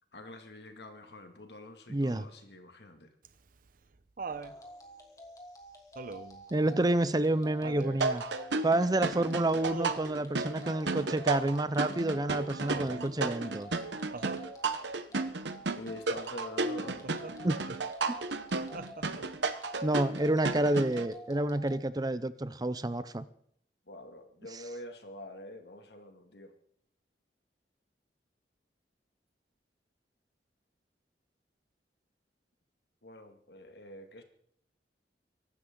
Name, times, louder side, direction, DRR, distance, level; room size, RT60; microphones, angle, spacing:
voice 1, 0.1-3.1 15.7-17.1 23.9-26.5 33.0-34.2, left 1 dB, 65° left, 5 dB, 2.3 m, -46 dB
voice 2, 1.9-2.3 6.5-8.2 8.6-13.7 17.4-17.8 18.1-18.2 19.8-23.2 24.5-24.6, right 1 dB, 20° right, 15 dB, 0.6 m, -29 dB
Laughter, 3.2-4.6 6.0-6.4 7.6-8.1 9.7-10.2 12.7-13.2 14.1-14.5 16.9-17.4 18.7-19.4 20.8-20.9, right 3 dB, 50° right, 0.8 m, -42 dB
sound 1, 4.3-21.8, equal, 20° left, 2.6 m, -50 dB
sound 2, 8.0-21.1, right 3 dB, 80° right, 1.1 m, -33 dB
23.5 x 12.0 x 3.9 m, 0.67 s
head